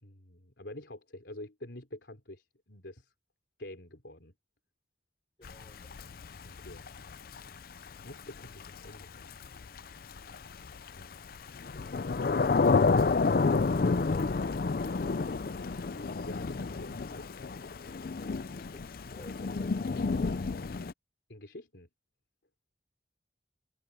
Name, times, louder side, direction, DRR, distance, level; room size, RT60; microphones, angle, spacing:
voice 1, 0.0-3.1 3.6-4.3 6.4-6.8 8.0-9.4 11.0-11.2 15.9-17.3 21.3-21.9, left 1 dB, 85° left, 3.6 m, -47 dB
Thunder / Rain, 5.4-20.9, left 4 dB, 55° left, 0.5 m, -30 dB
voice 2, 5.4-5.9 18.2-20.6, left 1 dB, 30° left, 4.4 m, -54 dB
head